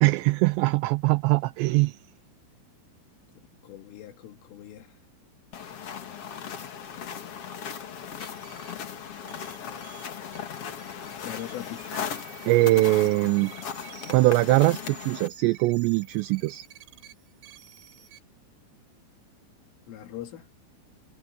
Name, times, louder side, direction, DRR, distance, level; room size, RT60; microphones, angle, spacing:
voice 1, 0.0-2.0 12.5-13.5 14.1-16.6, right 20 dB, 90° right, 2.5 m, -22 dB
voice 2, 3.4-4.9 11.2-12.0 19.9-20.5, left 12 dB, 85° left, 5.0 m, -41 dB
sound 1, 5.5-15.3, left 8 dB, 65° left, 1.4 m, -37 dB
sound 2, 8.2-18.2, right 8 dB, 70° right, 5.2 m, -50 dB
omnidirectional pair, 5.6 m